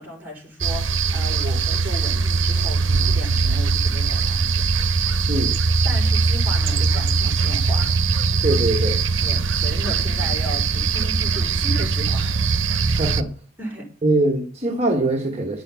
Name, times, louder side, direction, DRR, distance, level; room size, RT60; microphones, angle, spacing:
voice 1, 0.0-4.7 5.8-8.0 9.2-12.4 12.8-13.0 13.6-13.9, right 1 dB, 10° right, 5.1 m, -35 dB
sound 1, 0.6-13.2, right 4 dB, 65° right, 0.9 m, -21 dB
sound 2, 2.5-5.3, right 4 dB, 90° right, 0.5 m, -30 dB
voice 2, 8.4-9.0 13.0-13.3 14.0-15.6, right 2 dB, 30° right, 1.2 m, -22 dB
10.0 x 6.8 x 8.1 m
head